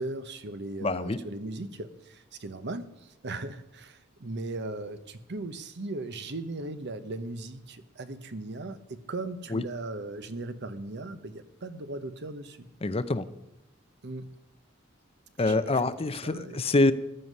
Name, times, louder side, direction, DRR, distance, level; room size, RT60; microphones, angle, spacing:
voice 1, 0.0-12.7 14.0-14.3 15.4-15.8 16.2-16.6, right 2 dB, 55° right, 11 dB, 1.0 m, -38 dB
voice 2, 0.8-1.2 9.5-9.6 12.8-13.2 15.4-16.9, left 2 dB, 30° left, 12 dB, 0.6 m, -25 dB
14.5 x 11.0 x 5.4 m, 0.90 s
head